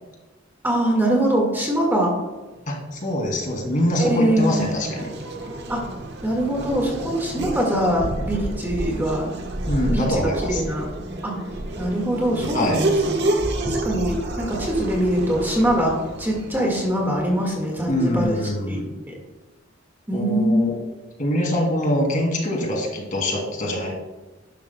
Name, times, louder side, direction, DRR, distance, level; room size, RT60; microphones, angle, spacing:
voice 1, 0.6-2.1 4.0-4.7 5.7-5.8 6.2-9.3 9.9-10.9 11.2-11.3 11.8-12.9 13.6-18.4 18.7-19.1 20.1-20.7, right 1 dB, 10° right, -1 dB, 1.7 m, -23 dB
voice 2, 2.7-5.1 9.7-10.6 12.5-12.8 17.9-18.9 20.1-20.8 21.2-23.9, left 1 dB, 40° left, 0 dB, 2.4 m, -24 dB
Race car auto racing / Accelerating revving vroom, 2.9-18.5, right 1 dB, 55° right, 1.2 m, -30 dB
12.0 x 11.0 x 2.2 m, 1.2 s
head